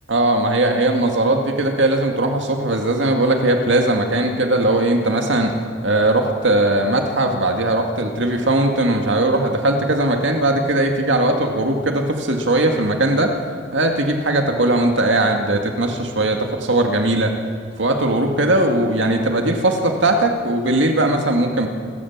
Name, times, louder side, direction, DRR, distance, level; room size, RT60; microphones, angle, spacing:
voice 1, 0.1-5.5 5.8-13.3 13.7-17.3 17.8-21.7, right 1 dB, 65° right, 3 dB, 2.1 m, -19 dB
28.0 x 14.0 x 7.4 m, 2.1 s
head